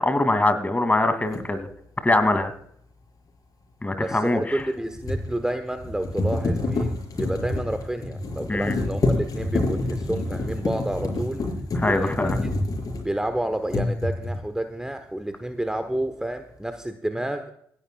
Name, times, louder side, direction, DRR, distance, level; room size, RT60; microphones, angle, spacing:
voice 1, 0.0-1.7 2.0-2.5 3.8-4.6 8.5-8.7 11.7-12.4, left 2 dB, 20° left, 10 dB, 2.4 m, -22 dB
sound 1, 1.3-1.5 4.5-13.3 13.7-14.5, left 2 dB, 45° left, 5.1 m, -27 dB
voice 2, 4.0-11.5 11.8-12.6 13.0-17.5, right 1 dB, 10° right, 9 dB, 1.1 m, -30 dB
28.0 x 10.5 x 2.3 m, 0.69 s
hypercardioid pair, 45°, 8 cm